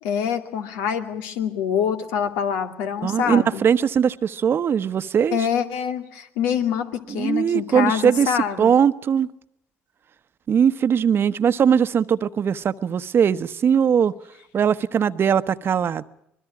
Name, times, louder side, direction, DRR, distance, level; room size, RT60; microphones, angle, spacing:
voice 1, 0.0-3.6 5.3-8.7, left 8 dB, 80° left, 6 dB, 2.4 m, -25 dB
voice 2, 3.0-5.5 7.1-9.3 10.5-14.1 14.5-16.0, right 7 dB, 45° right, 13 dB, 1.1 m, -20 dB
25.5 x 21.0 x 6.1 m, 0.79 s
hypercardioid pair, 65°, 5 cm